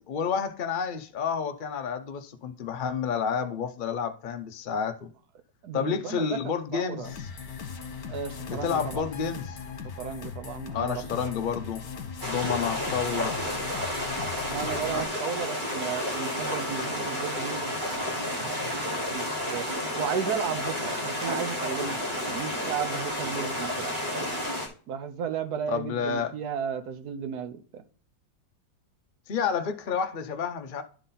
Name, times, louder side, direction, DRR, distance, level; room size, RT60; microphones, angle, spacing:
voice 1, 0.1-5.1 5.7-7.3 8.5-9.6 10.7-11.8 12.2-13.4 25.7-26.3 29.3-30.8, left 6 dB, 80° left, 0.4 m, -30 dB
voice 2, 5.6-6.4 6.7-7.1 8.1-9.0 10.0-11.3 14.5-18.2 19.1-24.0 24.9-27.8, right 7 dB, 65° right, 1.3 m, -34 dB
sound 1, 7.0-15.1, left 6 dB, 60° left, 1.5 m, -39 dB
sound 2, 12.2-24.7, left 1 dB, 30° right, 1.7 m, -31 dB
11.0 x 4.1 x 3.9 m
omnidirectional pair, 1.9 m